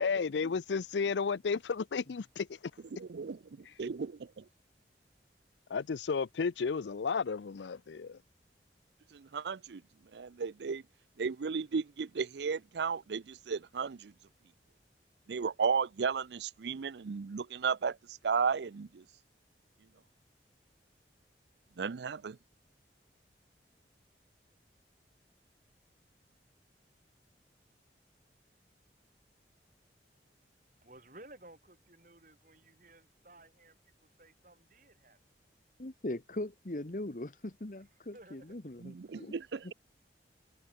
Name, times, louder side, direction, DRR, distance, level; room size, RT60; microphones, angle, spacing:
voice 1, 0.0-2.6 3.7-3.8 5.7-8.2, left 5 dB, 90° left, 0.5 m, -33 dB
voice 2, 3.0-4.4 9.1-9.8 10.1-10.8 11.2-14.1 15.3-18.0 18.2-19.0 21.8-22.4 38.8-39.7, right 5 dB, 75° right, 0.5 m, -34 dB
voice 3, 30.8-35.2 37.7-37.8 38.1-38.6 39.1-39.3, right 2 dB, 45° right, 6.0 m, -57 dB
voice 4, 35.8-39.3, left 1 dB, 45° left, 1.2 m, -40 dB
head